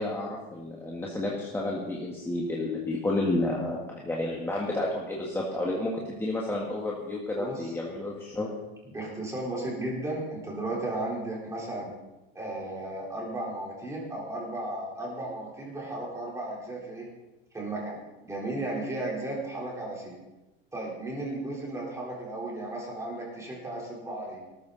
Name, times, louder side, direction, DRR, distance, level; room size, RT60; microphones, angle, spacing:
voice 1, 0.0-8.5, left 2 dB, 10° left, -4 dB, 1.8 m, -31 dB
voice 2, 7.4-7.7 8.9-11.9 12.3-17.1 17.5-18.0 18.2-20.2 20.7-24.4, right 2 dB, 10° right, -3 dB, 3.9 m, -34 dB
18.5 x 13.5 x 4.1 m, 1.0 s
supercardioid pair, 160°, 31 cm